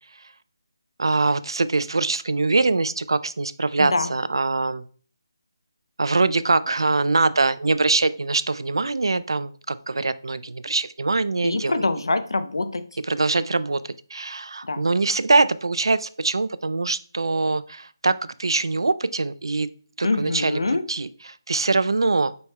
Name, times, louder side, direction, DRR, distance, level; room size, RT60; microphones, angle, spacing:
voice 1, 1.0-4.8 6.0-11.7 13.1-19.7 20.0-20.6 20.9-21.1 21.5-22.3, right 3 dB, 80° right, 15 dB, 0.4 m, -23 dB
voice 2, 3.8-4.1 11.4-13.0 14.6-14.8 20.0-20.8, left 3 dB, 80° left, 10 dB, 0.7 m, -25 dB
5.4 x 4.3 x 2.2 m, 0.43 s
figure-of-eight pair, 165°, 2 cm